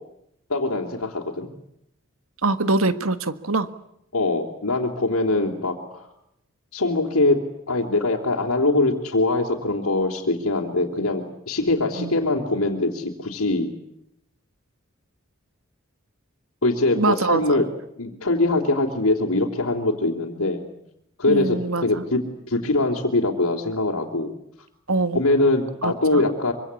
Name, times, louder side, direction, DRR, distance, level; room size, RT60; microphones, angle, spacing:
voice 1, 0.5-1.5 4.1-6.1 6.7-7.4 7.7-13.7 16.6-17.7 18.0-20.7 21.2-22.2 22.5-24.3 25.1-26.5, left 2 dB, 90° left, -2 dB, 3.4 m, -22 dB
voice 2, 2.4-3.7 11.9-12.2 17.0-17.6 21.3-22.0 24.9-25.2 25.8-26.2, right 3 dB, 75° right, 12 dB, 1.7 m, -24 dB
25.5 x 25.0 x 8.4 m, 0.79 s
head